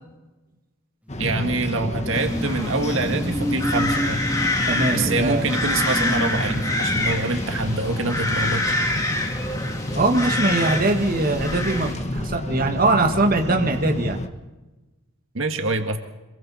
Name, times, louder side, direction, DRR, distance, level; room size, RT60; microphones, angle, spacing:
sound 1, 1.1-14.3, equal, 30° left, 1.5 m, -29 dB
sound 2, 1.1-10.1 10.5-10.7, equal, 5° right, 0.8 m, -32 dB
voice 1, 1.2-4.2 4.9-8.7 15.3-16.0, right 2 dB, 65° right, 5 dB, 1.8 m, -26 dB
sound 3, 2.1-11.9, left 2 dB, 15° left, 3.6 m, -27 dB
voice 2, 4.7-5.5 9.9-14.2, right 2 dB, 40° right, 3 dB, 1.9 m, -22 dB
27.0 x 22.5 x 4.3 m, 1.1 s
head